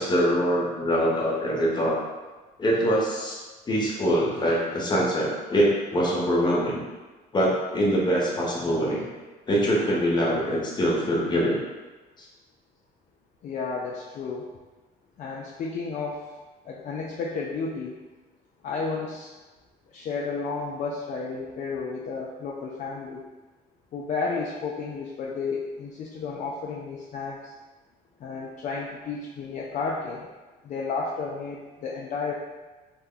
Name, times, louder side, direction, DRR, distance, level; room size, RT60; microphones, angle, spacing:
voice 1, 0.0-1.9 2.6-6.8 7.3-9.1 9.5-11.6 12.2-12.3, equal, 25° left, -4 dB, 0.9 m, -24 dB
voice 2, 13.4-14.5 15.2-16.3 16.6-18.0 18.6-19.3 19.9-23.2 23.9-27.5 28.2-30.3 30.6-32.3, left 4 dB, 45° left, -2 dB, 0.4 m, -32 dB
2.9 x 2.1 x 3.6 m, 1.2 s
cardioid pair, 110°, 17 cm